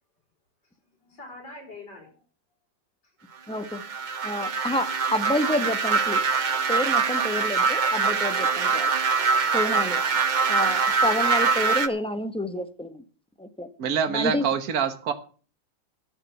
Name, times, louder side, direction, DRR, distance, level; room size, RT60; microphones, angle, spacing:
voice 1, 0.9-2.1 3.0-3.1 4.3-4.6 7.6-8.9 9.5-9.6, left 1 dB, 65° left, 0 dB, 5.4 m, -45 dB
voice 2, 3.5-3.8 4.2-6.2 6.7-8.9 9.5-10.0 10.5-13.0 13.4-13.7 14.1-14.5, left 1 dB, 5° left, 8 dB, 0.7 m, -29 dB
sound 1, 3.5-11.9, right 5 dB, 70° right, 0.4 m, -24 dB
voice 3, 13.8-15.1, right 7 dB, 55° right, 9 dB, 1.7 m, -25 dB
12.0 x 7.1 x 7.9 m, 0.40 s
omnidirectional pair, 2.0 m